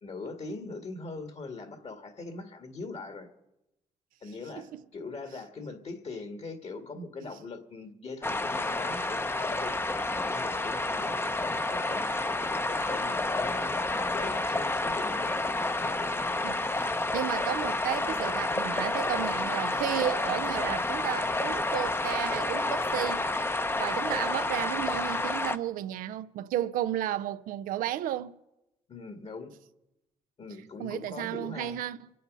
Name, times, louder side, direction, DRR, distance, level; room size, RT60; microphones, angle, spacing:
voice 1, 0.0-3.3 4.2-9.7 10.1-12.0 12.5-13.8 14.1-15.3 15.8-16.3 28.9-29.5 30.4-31.8, left 3 dB, 50° left, 2.0 m, -41 dB
sound 1, 8.2-25.6, left 2 dB, 15° left, 0.8 m, -30 dB
voice 2, 16.4-23.5 23.8-28.4 30.8-32.1, right 13 dB, 85° right, 0.6 m, -33 dB
24.5 x 8.5 x 5.4 m
supercardioid pair, 65°, 14 cm